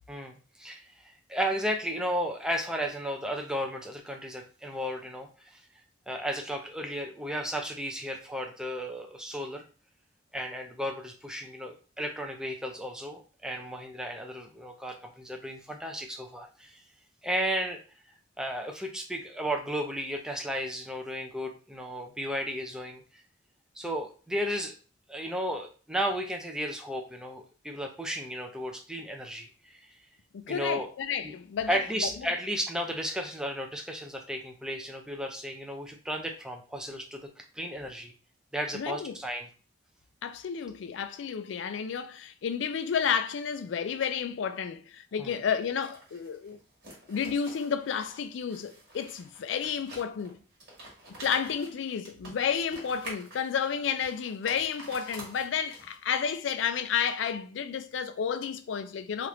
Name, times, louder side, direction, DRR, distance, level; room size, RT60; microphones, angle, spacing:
voice 1, 0.1-0.8 1.3-5.6 6.1-9.6 10.3-16.8 17.2-17.8 18.4-23.0 23.8-24.7 25.1-29.8 30.5-30.9 31.2-31.3 31.7-38.1 38.5-39.5 45.2-45.3, equal, 5° right, 0.4 m, -34 dB
voice 2, 30.3-31.8 38.7-39.2 40.2-46.6 47.1-50.4 51.2-59.3, left 7 dB, 85° left, 0.4 m, -31 dB
sound 1, 45.6-56.1, right 1 dB, 60° right, 1.4 m, -48 dB
3.1 x 2.4 x 3.1 m
head